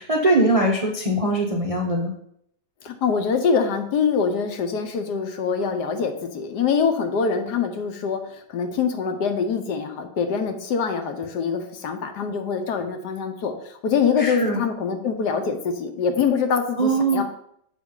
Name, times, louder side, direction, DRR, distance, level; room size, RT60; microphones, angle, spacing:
voice 1, 0.0-2.1 14.2-14.6 16.8-17.2, right 2 dB, 35° right, 0 dB, 0.5 m, -21 dB
voice 2, 2.8-17.2, left 6 dB, 70° left, 6 dB, 1.4 m, -24 dB
7.1 x 5.7 x 3.8 m, 0.70 s
omnidirectional pair, 1.9 m